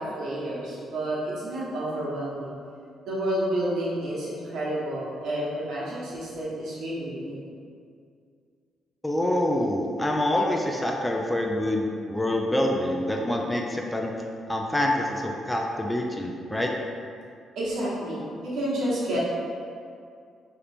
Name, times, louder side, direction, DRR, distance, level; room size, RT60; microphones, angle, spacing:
voice 1, 0.0-2.5 3.0-7.4 17.5-19.2, right 1 dB, 75° right, -7 dB, 1.0 m, -30 dB
voice 2, 9.0-14.1 14.5-16.7, left 1 dB, 10° left, 0 dB, 0.3 m, -26 dB
2.9 x 2.5 x 3.4 m, 2.3 s
cardioid pair, 90°, 0 cm